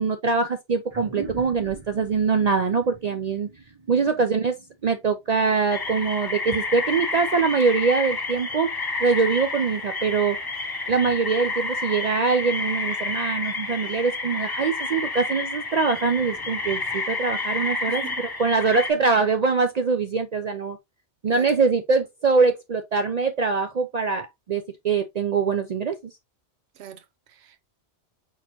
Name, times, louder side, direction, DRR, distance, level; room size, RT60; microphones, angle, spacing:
voice 1, 0.0-3.5 3.9-4.6 4.8-8.7 9.0-10.4 10.9-18.0 18.4-20.8 21.2-26.1, right 4 dB, 55° right, 0.4 m, -23 dB
sound 1, 0.9-5.8, right 3 dB, 25° right, 0.9 m, -42 dB
sound 2, 5.7-18.9, left 3 dB, 25° left, 0.6 m, -30 dB
voice 2, 17.9-18.2 21.3-21.5 26.8-27.6, right 9 dB, 70° right, 1.0 m, -42 dB
4.2 x 4.1 x 2.8 m
omnidirectional pair, 1.2 m